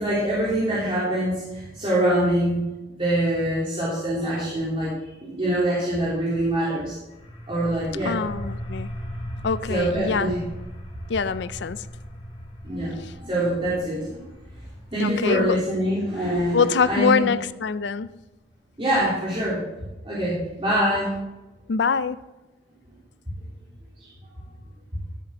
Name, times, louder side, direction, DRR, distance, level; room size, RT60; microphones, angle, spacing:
voice 1, 0.0-2.6 2.9-4.9 5.2-6.9 7.5-8.2 9.7-10.4 12.6-14.3 14.9-17.3 18.8-19.7 20.0-21.1, right 1 dB, 30° right, 3.2 m, -24 dB
sound 1, 7.1-18.6, equal, 35° left, 2.5 m, -39 dB
voice 2, 8.0-8.9 9.4-10.3 11.1-11.9 13.0-13.2 15.0-15.6 16.2-16.3 16.5-18.1 21.7-22.2, left 5 dB, 65° left, 0.4 m, -24 dB
13.0 x 8.5 x 3.7 m
head